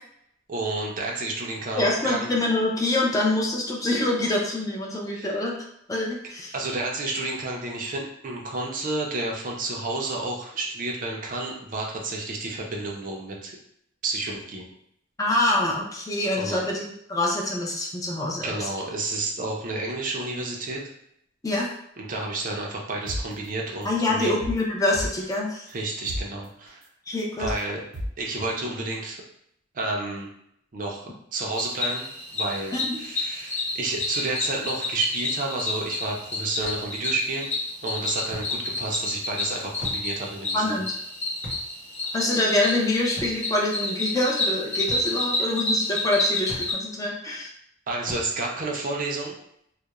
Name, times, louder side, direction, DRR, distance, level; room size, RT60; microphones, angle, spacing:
voice 1, 0.5-2.3 5.1-5.4 6.5-13.5 14.0-14.6 16.4-16.7 18.4-20.9 22.0-24.4 25.7-26.8 27.4-27.8 28.2-29.2 29.7-30.3 30.7-31.0 31.3-32.1 32.3-37.5 37.8-40.8 47.9-49.4, right 2 dB, 45° right, -1 dB, 0.5 m, -30 dB
voice 2, 1.8-5.6 5.9-6.5 15.2-18.7 21.4-21.7 23.8-25.7 27.1-27.5 32.7-33.0 40.5-41.0 42.1-47.5, left 2 dB, 20° left, -2 dB, 0.4 m, -25 dB
sound 1, 23.1-23.2 23.7-23.8 24.2-25.3 25.7-25.8 26.1-26.2 26.7-26.8 27.2-27.6 27.9-28.1, equal, 75° right, 0.8 m, -31 dB
Cricket, 31.5-46.7, left 2 dB, 35° left, 1.0 m, -29 dB
sound 2, 36.6-36.8 38.3-38.5 39.8-40.1 41.4-41.7 43.2-43.4 44.9-45.1 46.5-46.7 48.1-48.3, equal, 65° left, 0.8 m, -37 dB
2.3 x 2.0 x 2.9 m, 0.74 s
head